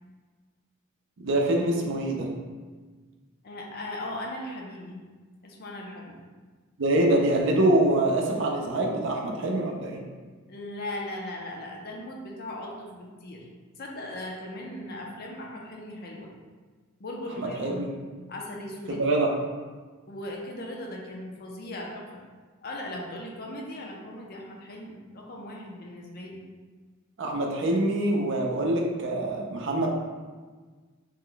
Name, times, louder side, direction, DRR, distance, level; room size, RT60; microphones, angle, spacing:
voice 1, 1.2-2.3 6.8-10.0 17.4-17.9 18.9-19.3 27.2-29.9, right 1 dB, 60° right, 0 dB, 0.5 m, -25 dB
voice 2, 3.4-5.0 5.4-6.1 10.5-13.5 13.8-16.3 17.0-17.9 18.3-19.0 20.1-22.2 22.6-26.5, left 1 dB, 50° left, -1 dB, 0.5 m, -38 dB
3.0 x 2.2 x 3.8 m, 1.4 s
head